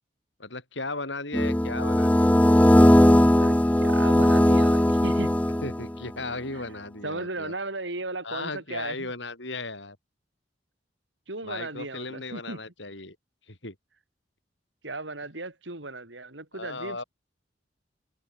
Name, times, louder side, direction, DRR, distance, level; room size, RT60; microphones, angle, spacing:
voice 1, 0.4-2.4 5.6-7.5 8.2-10.0 11.4-13.2 13.5-13.8 16.5-17.0, left 3 dB, 75° left, 7.7 m, -36 dB
sound 1, 1.3-6.0, left 1 dB, 10° left, 0.5 m, -19 dB
voice 2, 3.4-5.3 6.5-6.6 7.0-9.1 11.3-12.6 14.8-17.0, right 2 dB, 75° right, 4.5 m, -36 dB
head